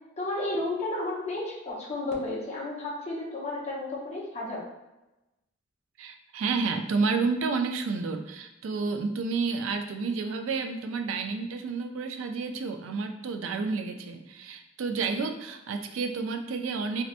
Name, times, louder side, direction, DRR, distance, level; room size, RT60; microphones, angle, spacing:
voice 1, 0.2-4.6, left 2 dB, 35° left, -4 dB, 0.8 m, -32 dB
voice 2, 6.0-17.0, right 4 dB, 75° right, 6 dB, 0.4 m, -30 dB
3.1 x 2.8 x 2.5 m, 0.98 s
head